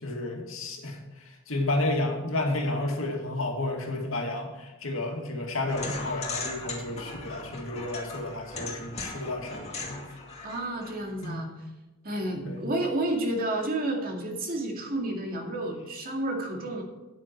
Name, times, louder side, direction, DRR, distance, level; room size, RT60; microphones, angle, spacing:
voice 1, 0.0-10.0 11.2-11.6 12.4-12.7, left 2 dB, 75° left, 1 dB, 2.3 m, -31 dB
sound 1, 5.7-11.3, left 3 dB, 30° left, 2.2 m, -38 dB
voice 2, 10.4-11.5 12.0-16.8, right 1 dB, 45° right, 1 dB, 2.2 m, -30 dB
9.3 x 9.3 x 4.5 m, 1.1 s
head